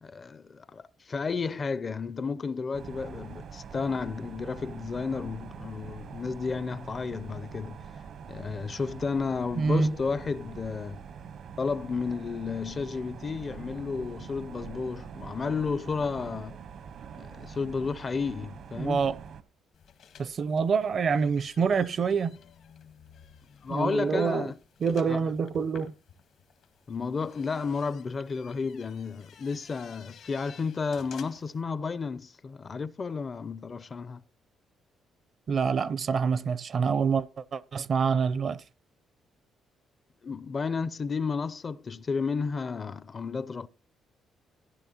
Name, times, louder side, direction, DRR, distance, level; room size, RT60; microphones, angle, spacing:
voice 1, 0.0-7.8 8.3-11.0 11.6-16.6 17.2-19.1 23.6-24.6 25.1-25.2 26.9-34.2 40.2-43.7, left 5 dB, 40° left, 0.5 m, -32 dB
sound 1, 2.7-19.4, right 7 dB, 70° right, 1.0 m, -44 dB
voice 2, 9.6-9.9 18.8-19.2 20.2-22.4 23.7-24.5 24.8-25.9 35.5-38.6, right 5 dB, 50° right, 0.6 m, -26 dB
sound 2, 19.7-31.6, left 7 dB, 75° left, 1.7 m, -54 dB
15.5 x 10.5 x 2.9 m
cardioid pair, 90°, 0 cm